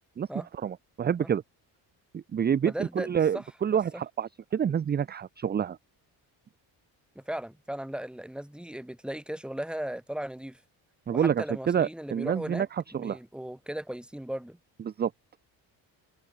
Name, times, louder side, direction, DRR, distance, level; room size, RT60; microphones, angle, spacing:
voice 1, 0.6-1.4 2.1-5.8 11.1-12.7 12.9-13.2 14.9-15.1, right 8 dB, 25° right, 0.4 m, -28 dB
voice 2, 2.6-3.4 3.7-4.0 7.1-10.6 11.1-12.7 12.9-14.6, right 1 dB, ahead, 1.2 m, -37 dB
cardioid pair, 80°, 45 cm